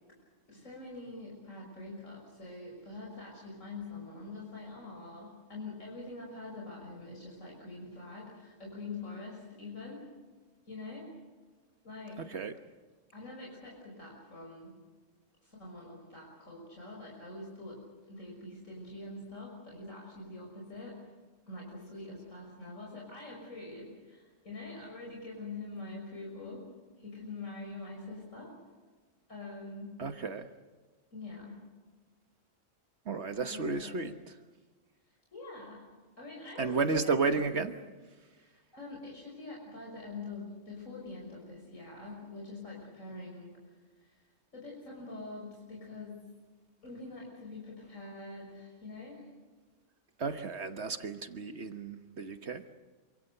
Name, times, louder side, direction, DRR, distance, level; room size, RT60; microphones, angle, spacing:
voice 1, 0.5-10.0 10.7-11.1 11.8-12.2 13.1-14.7 15.4-17.8 18.1-21.0 21.5-26.7 27.0-28.6 29.3-30.0 31.1-31.6 33.4-34.1 35.1-35.9 36.2-37.7 38.4-43.6 44.0-44.1 44.5-46.2 46.8-49.2, left 2 dB, 80° left, -2 dB, 6.6 m, -45 dB
voice 2, 12.2-12.5 30.0-30.5 33.1-34.1 36.6-37.7 50.2-52.6, right 4 dB, 60° right, 8 dB, 1.4 m, -32 dB
27.5 x 25.5 x 6.7 m, 1.3 s
omnidirectional pair, 1.3 m